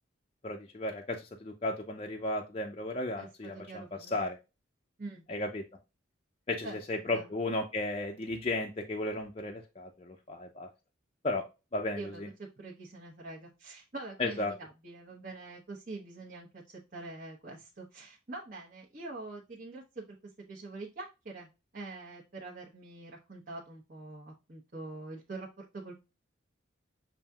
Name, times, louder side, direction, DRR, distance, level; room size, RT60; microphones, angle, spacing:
voice 1, 0.4-3.8 4.1-4.4 5.3-5.6 6.5-10.7 11.2-11.4 11.7-12.3 14.2-14.5, left 2 dB, 30° left, 2 dB, 0.5 m, -34 dB
voice 2, 3.2-4.3 5.0-5.2 6.6-6.8 7.1-7.3 11.9-20.2 20.5-21.5 21.7-25.9, right 2 dB, 45° right, -4 dB, 1.0 m, -45 dB
7.1 x 2.7 x 2.3 m, 0.27 s
head